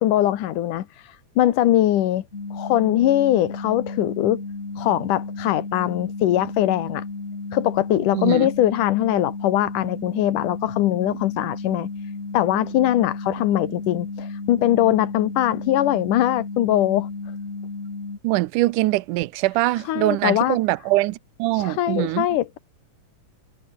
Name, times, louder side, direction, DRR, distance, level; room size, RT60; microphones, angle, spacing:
voice 1, 0.0-2.2 2.5-4.4 4.8-7.0 7.5-11.9 12.3-17.1 19.9-20.6 21.5-22.6, left 13 dB, 80° left, 2.8 m, -21 dB
sound 1, 2.3-18.2, left 3 dB, 20° left, 2.8 m, -33 dB
voice 2, 8.1-8.5 18.2-22.3, right 19 dB, 80° right, 2.2 m, -23 dB
omnidirectional pair, 3.6 m